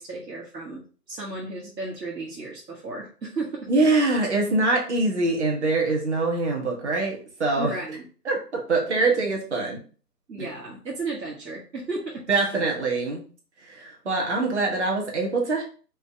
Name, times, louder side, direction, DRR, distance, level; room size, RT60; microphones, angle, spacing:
voice 1, 0.0-3.7 7.6-8.0 8.9-9.0 10.3-12.2, right 3 dB, 85° right, -4 dB, 1.5 m, -34 dB
voice 2, 3.7-7.8 8.2-9.8 10.4-10.5 12.3-13.2 13.6-15.6, right 3 dB, 45° right, -1 dB, 1.3 m, -24 dB
5.1 x 2.5 x 3.4 m, 0.38 s
hypercardioid pair, 170°, 49 cm